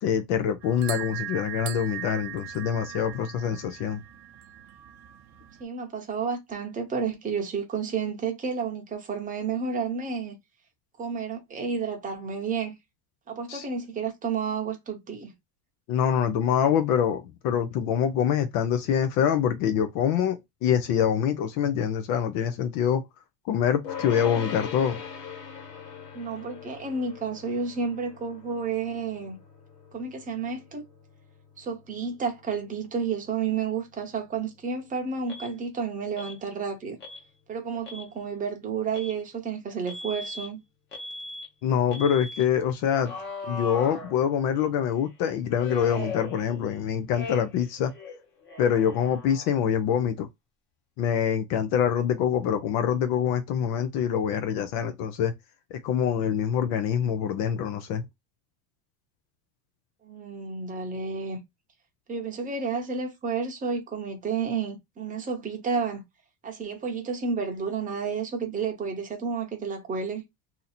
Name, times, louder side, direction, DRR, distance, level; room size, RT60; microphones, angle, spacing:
voice 1, 0.0-4.0 13.5-13.7 15.9-23.0 23.5-25.0 41.6-43.1 43.4-47.9 48.6-50.3 51.0-55.3 55.7-58.0, left 8 dB, 50° left, 0.5 m, -25 dB
sound 1, 0.6-5.6, right 12 dB, 50° right, 0.6 m, -39 dB
voice 2, 5.6-10.3 11.0-12.8 13.3-15.3 26.1-29.4 29.9-30.9 31.6-37.0 37.5-40.6 60.0-61.4 62.1-66.0 66.4-70.2, right 5 dB, 20° right, 0.7 m, -31 dB
sound 2, 23.8-35.2, left 7 dB, 85° left, 1.5 m, -42 dB
Alarm, 35.3-35.5 36.2-36.4 37.0-37.2 37.7-38.1 38.9-39.2 39.9-40.5 40.9-41.5 41.9-42.4 43.0-44.6 45.6-46.8 47.1-47.7 47.9-49.6, left 2 dB, 25° left, 0.9 m, -39 dB
2.8 x 2.6 x 4.0 m
cardioid pair, 155°, 46 cm